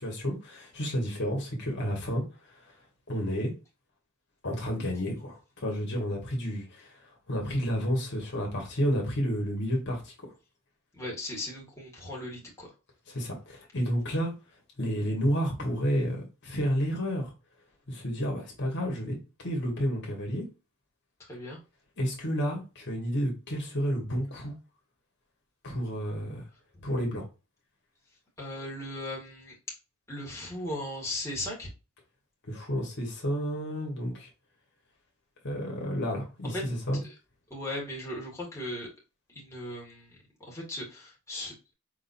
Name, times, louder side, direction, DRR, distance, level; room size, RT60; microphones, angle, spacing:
voice 1, 0.0-2.2 3.1-3.5 4.4-7.0 7.3-10.1 13.1-14.3 14.8-17.3 17.9-20.4 22.0-24.5 25.6-26.4 26.8-27.3 32.5-34.3 35.4-37.0, equal, 50° left, 1.6 m, -30 dB
voice 2, 10.9-12.7 21.2-21.6 26.7-26.8 28.4-29.5 30.1-31.7 36.4-36.6 37.5-38.9 39.3-41.7, left 1 dB, 15° left, 1.9 m, -37 dB
4.9 x 3.8 x 2.7 m
head